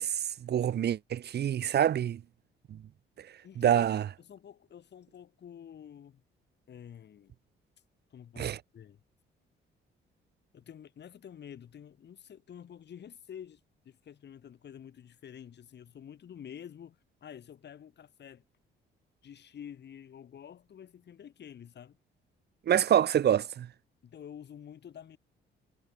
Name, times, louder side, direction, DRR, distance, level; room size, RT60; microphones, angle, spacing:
voice 1, 0.0-2.2 2.7-2.8 3.6-4.0 8.4-8.6 22.7-23.7, right 10 dB, 55° right, 0.9 m, -26 dB
voice 2, 3.4-6.2 6.7-7.3 8.1-9.0 10.5-18.4 19.2-22.0 22.7-22.8 24.0-25.2, left 9 dB, 60° left, 6.0 m, -49 dB
cardioid pair, 90°, 20 cm